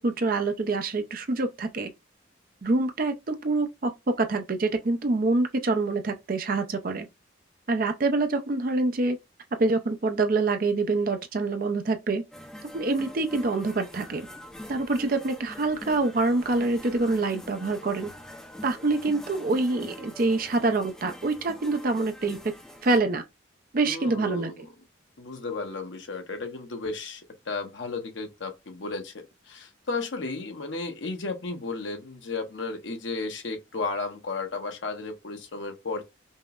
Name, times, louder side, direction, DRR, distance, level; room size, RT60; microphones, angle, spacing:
voice 1, 0.0-1.9 2.6-3.9 4.2-7.1 7.7-9.2 9.6-12.2 12.7-14.2 14.7-18.1 18.6-22.4 22.8-23.2 23.7-24.5, right 3 dB, 50° right, 0.5 m, -26 dB
sound 1, 12.3-23.0, left 1 dB, 5° left, 0.5 m, -44 dB
voice 2, 23.8-24.6 25.2-36.0, left 3 dB, 80° left, 0.8 m, -34 dB
5.4 x 2.0 x 2.3 m
head